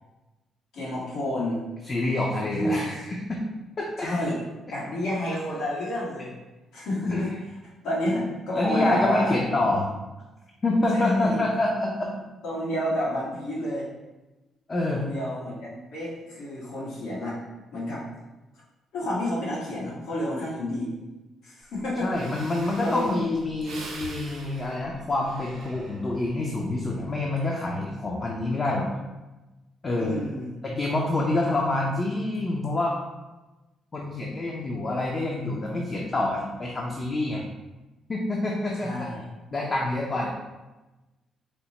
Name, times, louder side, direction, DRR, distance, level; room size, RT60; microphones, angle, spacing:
voice 1, 0.7-1.6 2.5-2.9 4.0-4.4 4.7-6.3 6.7-7.6 7.8-9.4 10.9-11.5 12.4-13.9 14.9-17.4 17.7-18.0 18.9-20.9 21.4-22.1 22.8-23.0 30.0-30.6 38.8-39.2, left 1 dB, 80° left, -7 dB, 1.3 m, -29 dB
voice 2, 1.8-3.4 3.8-4.1 7.1-7.3 8.5-9.9 10.6-12.1 14.7-15.1 22.0-28.9 29.8-30.2 30.6-32.9 33.9-37.4 38.1-39.1 39.5-40.3, left 2 dB, 35° left, -2 dB, 0.5 m, -27 dB
Breathing, 21.8-21.9 22.1-26.4 26.8-27.2, right 3 dB, 80° right, 0.6 m, -43 dB
4.3 x 2.0 x 2.9 m, 1.1 s
cardioid pair, 90°, 0 cm